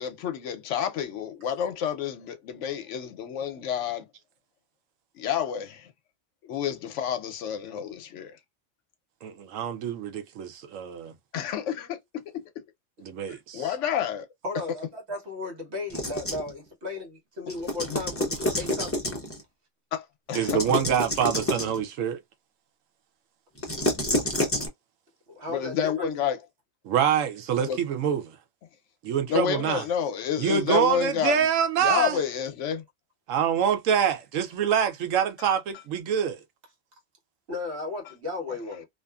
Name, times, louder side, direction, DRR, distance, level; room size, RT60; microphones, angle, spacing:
voice 1, 0.0-4.1 5.2-5.9 6.4-8.4 11.3-12.0 12.3-12.5 13.3-14.3 17.4-17.5 17.9-18.0 19.9-20.6 25.5-26.4 27.6-27.8 29.3-31.5 31.8-32.8, left 8 dB, 75° left, 0.9 m, -29 dB
voice 2, 9.2-11.1 13.0-13.7 20.3-22.2 26.8-28.2 29.0-29.8 30.4-32.2 33.3-36.4, right 8 dB, 85° right, 1.0 m, -25 dB
voice 3, 14.4-19.2 25.3-26.1 37.5-38.9, left 3 dB, 60° right, 1.3 m, -35 dB
sound 1, 15.9-16.5 17.5-19.4 20.3-21.8 23.6-24.7, left 1 dB, 20° left, 0.4 m, -28 dB
2.5 x 2.5 x 2.2 m
omnidirectional pair, 1.3 m